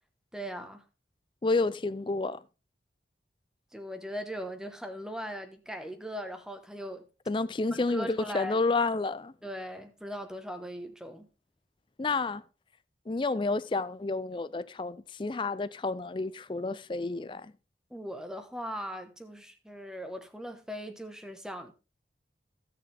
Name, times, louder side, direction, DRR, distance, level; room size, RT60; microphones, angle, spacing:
voice 1, 0.3-0.8 3.7-7.1 7.7-8.6 9.4-11.3 17.9-21.7, equal, 5° right, 1.1 m, -39 dB
voice 2, 1.4-2.4 7.3-9.3 12.0-12.4 13.1-17.5, left 3 dB, 25° left, 0.4 m, -30 dB
15.0 x 6.7 x 3.4 m
head